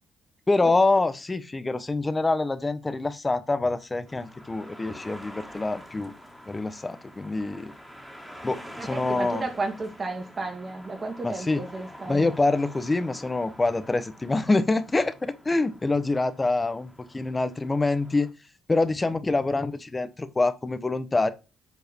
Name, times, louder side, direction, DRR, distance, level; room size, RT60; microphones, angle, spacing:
voice 1, 0.5-6.1 6.5-7.7 8.4-9.4 11.2-11.6 12.1-18.3 18.7-21.3, left 3 dB, 20° left, 1.2 m, -25 dB
sound 1, 4.1-18.3, equal, 5° right, 2.4 m, -46 dB
voice 2, 8.8-12.3, right 3 dB, 35° right, 2.6 m, -33 dB
8.3 x 4.8 x 4.6 m
cardioid pair, 90°, 0 cm